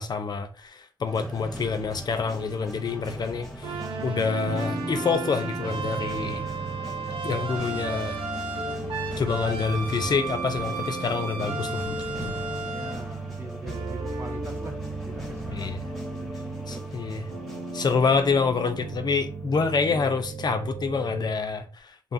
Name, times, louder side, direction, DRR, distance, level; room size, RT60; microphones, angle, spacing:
voice 1, 0.0-6.4 7.2-8.2 9.2-12.0 12.2-12.3 15.5-15.9 16.7-17.3 17.7-22.1, left 5 dB, 50° left, 0.4 m, -27 dB
sound 1, 1.1-19.7, equal, 5° left, 0.9 m, -39 dB
sound 2, 3.6-21.3, right 3 dB, 70° right, 0.5 m, -34 dB
voice 2, 12.7-14.8 15.0-15.7 16.1-16.8 19.9-20.2, right 1 dB, 30° right, 0.8 m, -42 dB
2.7 x 2.3 x 2.5 m
cardioid pair, 60°, 9 cm